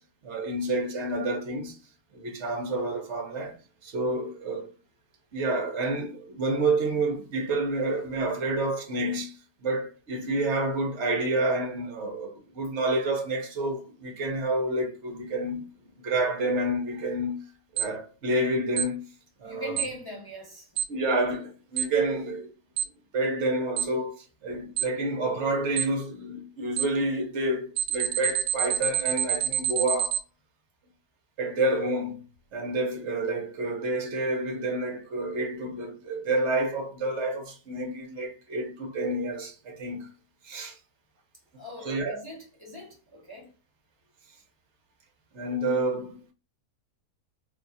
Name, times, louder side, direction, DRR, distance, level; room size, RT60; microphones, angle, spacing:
voice 1, 0.2-1.8 2.1-3.6 3.8-4.7 5.3-9.4 9.6-15.7 16.0-17.5 17.7-19.0 19.4-19.8 20.9-22.5 23.1-30.2 31.4-32.2 32.5-40.1 40.4-40.8 41.8-42.2 45.3-46.3, right 2 dB, 55° right, 0.9 m, -29 dB
Alarm, 17.8-17.9 18.8-18.9 19.8-19.9 20.8-20.9 21.8-21.9 22.8-22.9 23.8-23.9 24.8-24.9 25.8-25.9 26.8-26.9 27.8-30.2, right 10 dB, 85° right, 1.1 m, -26 dB
voice 2, 19.4-20.8 41.6-43.5, equal, 30° left, 0.4 m, -41 dB
2.7 x 2.3 x 4.0 m
omnidirectional pair, 1.6 m